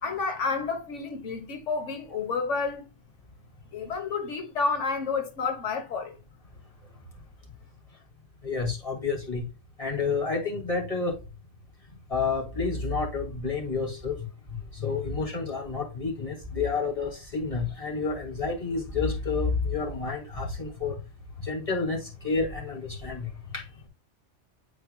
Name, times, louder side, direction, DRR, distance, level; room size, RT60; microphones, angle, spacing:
voice 1, 0.0-2.9 3.7-6.2, left 4 dB, 90° left, 1.6 m, -30 dB
voice 2, 8.4-9.5 9.8-11.2 12.1-14.3 14.7-21.0 21.4-23.7, left 4 dB, 30° left, 2.4 m, -29 dB
9.8 x 4.4 x 2.2 m
omnidirectional pair, 1.2 m